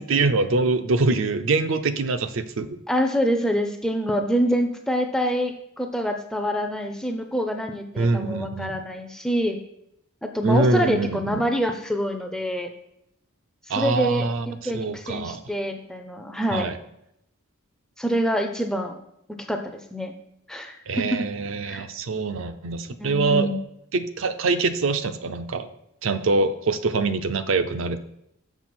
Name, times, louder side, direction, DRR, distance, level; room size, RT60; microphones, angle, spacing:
voice 1, 0.0-2.7 8.0-8.8 10.4-11.4 13.7-15.4 16.5-16.8 20.9-23.5 23.9-25.7 26.0-28.0, right 3 dB, 65° right, 9 dB, 0.5 m, -24 dB
voice 2, 2.9-9.6 10.2-12.7 13.7-16.7 18.0-19.0 19.5-19.6 19.9-20.1 20.5-21.3 21.6-21.8 23.0-23.6, equal, 5° left, 5 dB, 0.4 m, -26 dB
6.4 x 6.1 x 4.3 m, 0.79 s
head